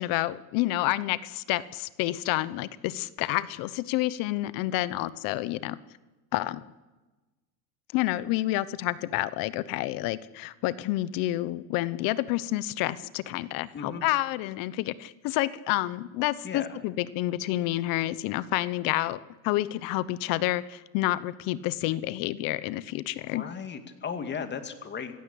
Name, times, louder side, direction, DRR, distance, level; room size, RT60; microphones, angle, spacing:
voice 1, 0.0-5.8 6.3-6.6 7.9-19.2 19.4-23.4, left 16 dB, 55° left, 17 dB, 1.0 m, -29 dB
voice 2, 13.7-14.0 16.4-16.8 23.3-25.2, left 6 dB, 25° left, 8 dB, 2.4 m, -36 dB
26.5 x 16.5 x 8.6 m, 1.2 s
supercardioid pair, 125°, 42 cm